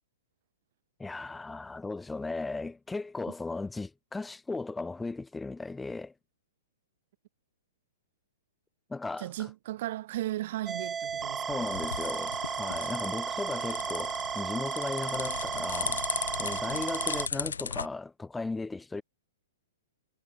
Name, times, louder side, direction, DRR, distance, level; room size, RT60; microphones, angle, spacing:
voice 1, 1.0-6.1 8.9-9.3 11.5-16.0 16.4-19.0, left 3 dB, 5° left, 5.3 m, -36 dB
voice 2, 9.2-11.7, right 15 dB, 55° right, 4.8 m, -36 dB
sound 1, 10.7-17.3, right 7 dB, 15° right, 4.7 m, -34 dB
sound 2, 11.1-17.9, left 6 dB, 90° left, 4.4 m, -37 dB
hypercardioid pair, 130°, 0 cm